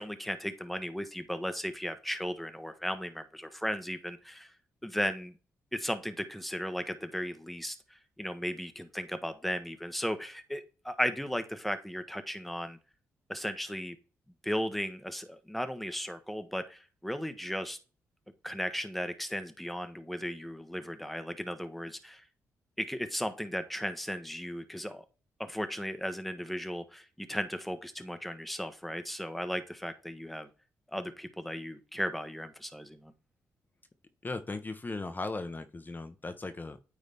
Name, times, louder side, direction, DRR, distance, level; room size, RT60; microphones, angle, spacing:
voice 1, 0.0-4.5 4.8-5.3 5.7-12.8 13.3-13.9 14.4-17.8 18.4-22.2 22.8-25.0 25.4-30.5 30.9-33.1, equal, ahead, 9 dB, 1.2 m, -36 dB
voice 2, 34.2-36.8, left 3 dB, 30° left, 8 dB, 1.0 m, -37 dB
9.2 x 3.9 x 3.5 m, 0.34 s
supercardioid pair, 50°, 6 cm